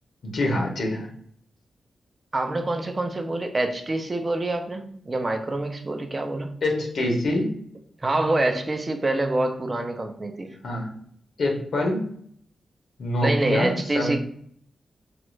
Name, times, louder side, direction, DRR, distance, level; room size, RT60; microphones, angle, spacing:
voice 1, 0.2-1.1 6.6-7.5 10.6-11.0 11.4-12.0 13.0-14.1, left 1 dB, 75° left, 1 dB, 0.8 m, -25 dB
voice 2, 2.3-6.6 8.0-10.6 13.2-14.2, right 2 dB, 30° right, 5 dB, 0.6 m, -26 dB
3.2 x 2.4 x 3.1 m, 0.64 s
cardioid pair, 70°, 0 cm